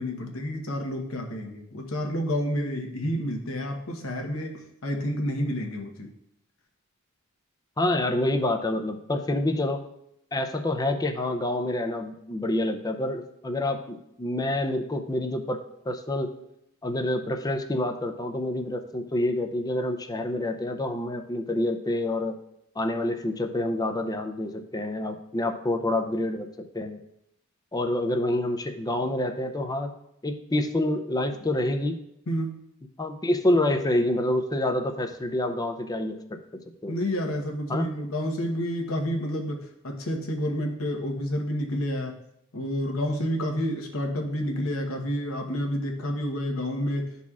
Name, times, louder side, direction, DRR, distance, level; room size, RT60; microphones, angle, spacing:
voice 1, 0.0-6.1 32.3-32.6 36.9-42.2 42.5-47.1, equal, 70° left, 2 dB, 1.0 m, -29 dB
voice 2, 7.8-9.8 10.3-15.6 15.9-16.3 16.8-22.4 22.8-26.5 26.7-27.0 27.7-29.9 30.2-32.0 33.0-36.4 36.8-36.9 37.7-37.9, left 1 dB, 15° left, 6 dB, 0.5 m, -27 dB
12.0 x 4.1 x 2.4 m, 0.79 s
head